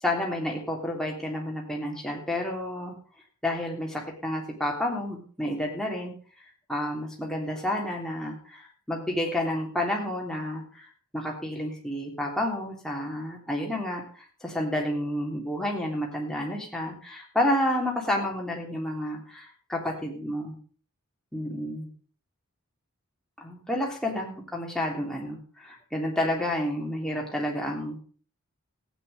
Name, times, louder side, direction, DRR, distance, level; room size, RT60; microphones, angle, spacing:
voice 1, 0.0-2.9 3.4-6.1 6.7-20.6 21.3-21.9 23.4-28.0, left 1 dB, 5° left, -1 dB, 3.3 m, -30 dB
15.0 x 9.5 x 5.4 m, 0.41 s
head